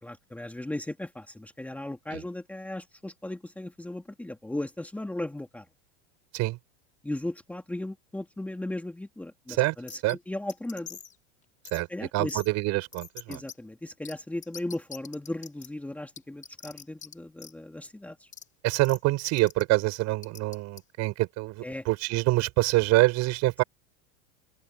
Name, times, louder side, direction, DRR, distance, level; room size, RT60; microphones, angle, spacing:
voice 1, 0.0-5.7 7.0-11.0 11.9-12.4 13.3-18.3 21.6-21.8, left 1 dB, 5° left, 2.6 m, -36 dB
sound 1, 9.9-10.1 10.5-11.1 11.6-11.8 12.3-12.5 12.9-13.5 14.0-14.1 14.4-15.7 16.2-17.1 17.4-17.5 18.3-18.4 18.8-19.0 19.3-19.6 20.2-20.8, left 7 dB, 20° left, 6.5 m, -43 dB
voice 2, 12.1-13.4 18.6-23.6, right 20 dB, 45° right, 7.5 m, -25 dB
supercardioid pair, 135°, 36 cm